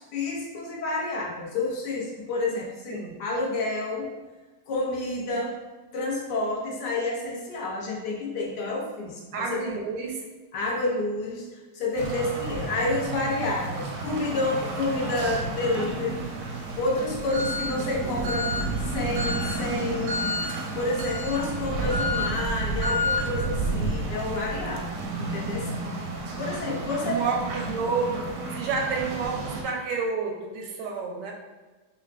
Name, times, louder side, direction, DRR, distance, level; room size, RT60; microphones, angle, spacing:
voice 1, 0.0-4.2 4.7-5.6 5.9-9.8 10.5-16.3 16.8-18.5 18.8-25.7 26.4-27.2, left 2 dB, 75° left, -2 dB, 1.3 m, -29 dB
voice 2, 9.3-10.2 18.0-18.3 27.0-31.3, right 4 dB, 85° right, 1 dB, 1.3 m, -30 dB
sound 1, 12.0-29.6, right 1 dB, 70° right, 0.8 m, -30 dB
5.5 x 2.2 x 2.4 m, 1.3 s
omnidirectional pair, 1.9 m